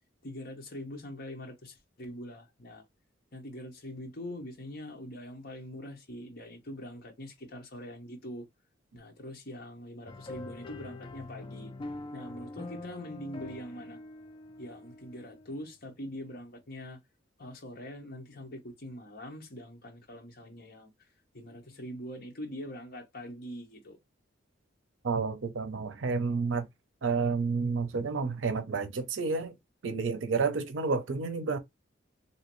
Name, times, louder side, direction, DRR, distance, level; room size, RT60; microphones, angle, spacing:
voice 1, 0.2-2.8 3.3-8.5 8.9-11.7 12.1-14.0 14.6-17.0 17.4-20.9 21.3-24.0, equal, 50° left, 0.9 m, -43 dB
sound 1, 10.1-15.6, left 2 dB, 25° left, 0.3 m, -44 dB
voice 2, 25.0-26.7 27.0-29.5 29.8-31.6, right 4 dB, 80° right, 0.6 m, -30 dB
3.0 x 2.7 x 2.9 m
head